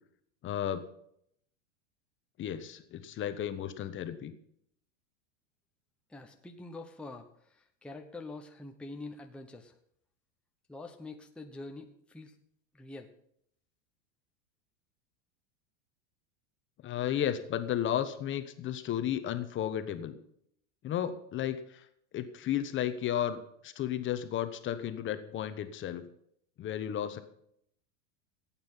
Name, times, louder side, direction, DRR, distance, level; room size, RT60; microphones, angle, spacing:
voice 1, 0.4-0.9 2.4-4.3 16.8-20.2 20.8-21.9 22.1-26.0 26.6-27.2, left 10 dB, 30° left, 10 dB, 1.2 m, -33 dB
voice 2, 6.1-9.8 10.7-12.4 12.7-13.1, left 2 dB, 5° left, 3 dB, 1.0 m, -45 dB
16.5 x 8.9 x 5.6 m, 0.70 s
supercardioid pair, 135°, 38 cm